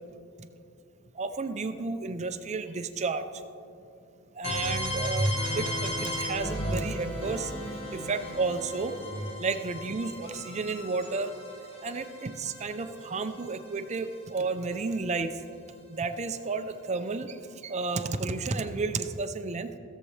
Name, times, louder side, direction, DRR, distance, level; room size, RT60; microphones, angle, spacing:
voice 1, 1.1-3.3 4.3-7.5 7.9-9.0 9.4-11.3 11.8-15.4 15.9-19.7, right 4 dB, 30° right, 8 dB, 0.5 m, -32 dB
sound 1, 4.4-14.2, equal, 25° left, 1.5 m, -34 dB
16.5 x 7.3 x 3.2 m, 2.6 s
head